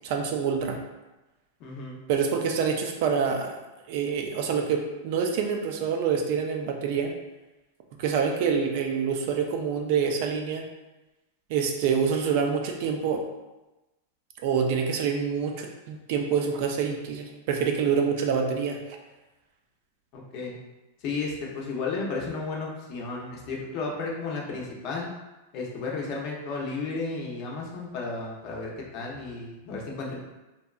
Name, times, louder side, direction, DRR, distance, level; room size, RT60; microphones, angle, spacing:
voice 1, 0.0-0.8 2.1-3.6 3.9-7.1 8.0-10.6 11.5-13.2 14.4-18.8, right 6 dB, 55° right, 3 dB, 0.3 m, -26 dB
voice 2, 1.6-2.0 20.1-20.6 21.0-25.1 25.5-30.2, left 3 dB, 40° left, -2 dB, 0.6 m, -33 dB
2.7 x 2.2 x 2.3 m, 1.0 s
supercardioid pair, 145°, 0 cm